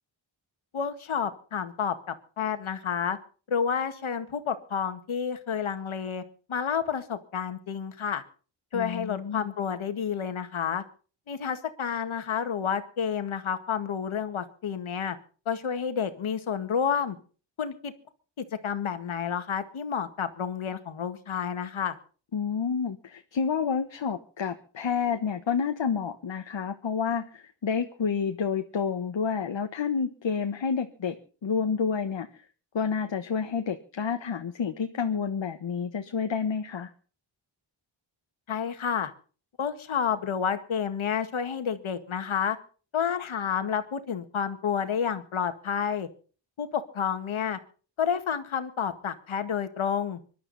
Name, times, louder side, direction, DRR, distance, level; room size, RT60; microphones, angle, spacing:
voice 1, 0.7-3.2 3.5-6.2 6.5-8.2 8.7-10.8 11.3-15.2 15.5-17.2 17.6-17.9 18.4-22.0 38.5-39.1 39.6-42.6 42.9-46.1 46.6-47.6 48.0-50.2, left 7 dB, 90° left, 9 dB, 1.9 m, -30 dB
voice 2, 8.7-9.5 22.3-31.2 31.4-32.3 32.7-36.9, left 6 dB, 70° left, 5 dB, 1.4 m, -29 dB
25.0 x 12.0 x 4.1 m, 0.39 s
wide cardioid pair, 105°, 47 cm